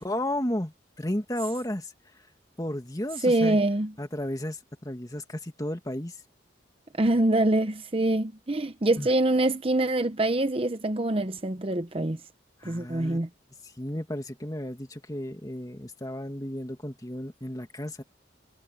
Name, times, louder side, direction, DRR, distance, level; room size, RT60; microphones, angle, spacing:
voice 1, 0.0-1.9 2.6-3.6 4.0-6.2 9.0-9.1 12.6-13.2 13.6-18.0, left 1 dB, 20° left, 2.1 m, -33 dB
voice 2, 3.2-3.9 7.0-12.2 12.7-13.3, right 1 dB, 30° right, 0.8 m, -25 dB
head